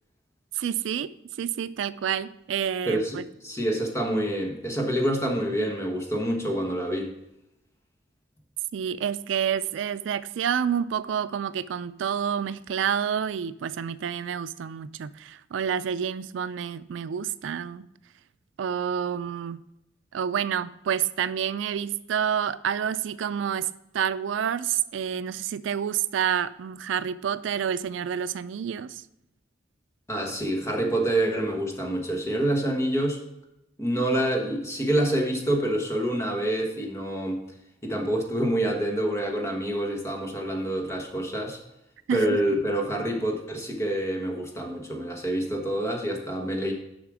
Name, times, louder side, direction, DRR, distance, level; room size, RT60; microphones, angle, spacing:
voice 1, 0.6-1.1 1.4-3.2 8.7-17.9 18.6-19.6 20.1-23.7 23.9-29.0 42.1-42.3, right 8 dB, 85° right, 0.3 m, -28 dB
voice 2, 2.9-7.1 30.1-33.2 33.8-37.4 37.8-41.6 42.1-46.7, right 1 dB, 15° left, 1.3 m, -27 dB
7.2 x 5.6 x 4.8 m
head